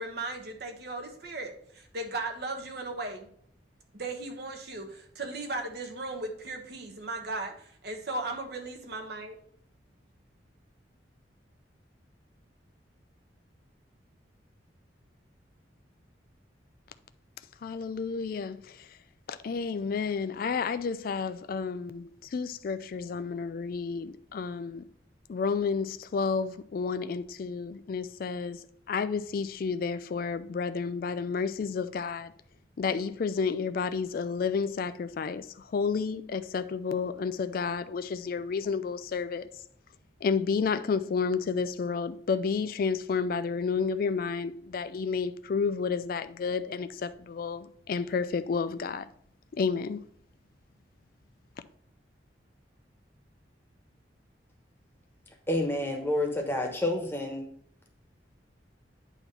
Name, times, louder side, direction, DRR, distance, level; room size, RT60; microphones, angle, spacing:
voice 1, 0.0-3.3 3.9-9.4, right 2 dB, 60° right, 1.2 m, -37 dB
voice 2, 17.6-19.0 19.3-24.9 25.3-32.3 32.8-39.5 40.2-49.1 49.5-50.0, left 5 dB, 50° left, 0.3 m, -31 dB
voice 3, 55.5-57.4, left 1 dB, 10° left, 1.1 m, -29 dB
8.9 x 3.0 x 5.4 m
head